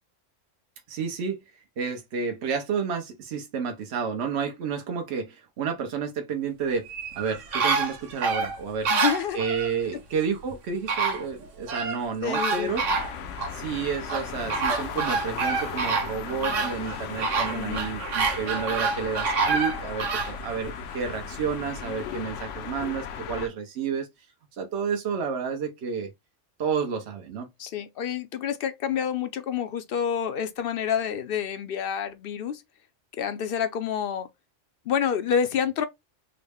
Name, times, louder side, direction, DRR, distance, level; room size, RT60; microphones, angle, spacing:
voice 1, 0.9-1.4 1.8-6.9 7.1-8.9 9.3-12.8 13.5-24.1 24.6-26.1 26.6-27.5, right 6 dB, 65° right, 1.0 m, -30 dB
sound 1, 6.9-9.7 10.5-10.6 10.9-12.0 12.3-13.5 14.1-20.3 20.8-20.9, right 4 dB, 90° right, 1.2 m, -27 dB
voice 2, 8.9-9.5 9.9-10.0 12.2-12.8 17.5-17.9 27.6-32.6 33.2-34.3 34.9-35.8, left 8 dB, 60° left, 0.6 m, -28 dB
sound 2, 12.7-23.5, left 7 dB, 80° left, 0.9 m, -36 dB
3.9 x 2.1 x 3.4 m
omnidirectional pair, 1.3 m